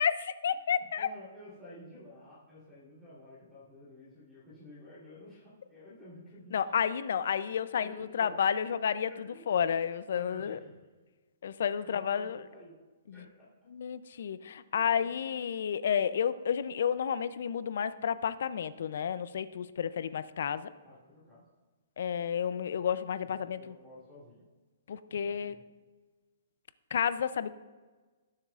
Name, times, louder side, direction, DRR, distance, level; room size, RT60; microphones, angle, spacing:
voice 1, 0.0-1.1 6.5-10.6 11.4-12.4 13.1-13.2 13.7-20.7 22.0-23.7 24.9-25.5 26.9-27.5, left 8 dB, 60° left, 15 dB, 0.5 m, -31 dB
voice 2, 0.8-6.8 7.7-8.4 9.1-9.5 9.7-10.9 11.8-12.7 13.1-13.5 15.0-15.1 20.8-21.4 23.2-24.4 25.1-25.6, left 1 dB, ahead, -11 dB, 3.3 m, -52 dB
19.0 x 7.3 x 2.4 m, 1.3 s
hypercardioid pair, 170°, 0 cm